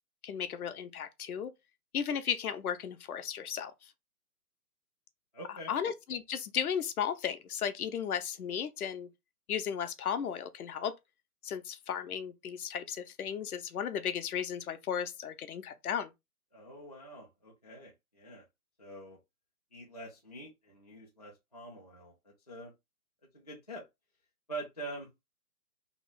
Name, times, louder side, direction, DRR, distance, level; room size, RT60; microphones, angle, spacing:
voice 1, 0.2-1.5 1.9-3.7 5.7-9.1 9.5-10.9 11.4-16.1, left 8 dB, 65° left, 0.6 m, -35 dB
voice 2, 5.3-5.7 16.5-18.4 18.8-19.2 19.7-22.7 23.3-23.9 24.5-25.2, right 2 dB, 30° left, 0.3 m, -45 dB
2.9 x 2.1 x 3.9 m
hypercardioid pair, 155°, 47 cm